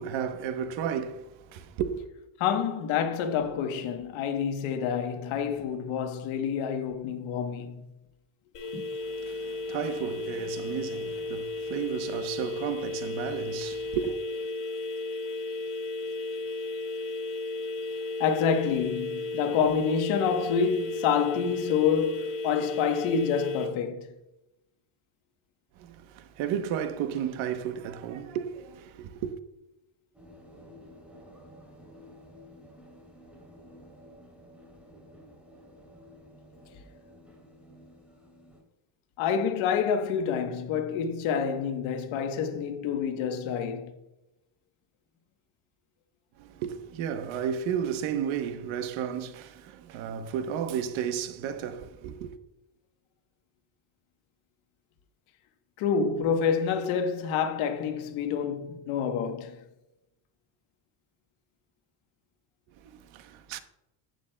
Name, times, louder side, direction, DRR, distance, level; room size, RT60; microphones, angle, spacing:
voice 1, 0.0-2.0 9.1-14.2 25.8-29.3 46.4-52.3 62.8-63.6, right 8 dB, 85° right, 1.0 m, -33 dB
voice 2, 2.4-7.8 18.2-24.1 39.2-43.9 55.8-59.6, left 7 dB, 90° left, 1.2 m, -28 dB
sound 1, 8.5-23.7, left 2 dB, 65° left, 2.9 m, -34 dB
sound 2, 30.1-38.6, equal, 5° right, 3.1 m, -52 dB
11.0 x 9.4 x 2.2 m
cardioid pair, 140°, 46 cm